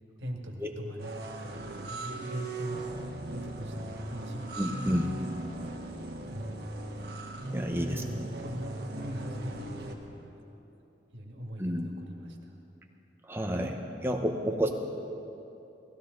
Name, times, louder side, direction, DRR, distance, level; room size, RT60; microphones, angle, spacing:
voice 1, 0.2-1.1 1.4-5.2 6.3-6.6 7.9-10.4 11.1-12.6, equal, 90° right, 0 dB, 1.9 m, -41 dB
sound 1, 1.0-9.9, right 2 dB, 60° right, 1.5 m, -38 dB
voice 2, 4.6-5.2 7.5-8.0 11.6-11.9 13.3-14.7, equal, 15° right, 2 dB, 1.0 m, -30 dB
18.0 x 15.5 x 3.9 m, 2.9 s
head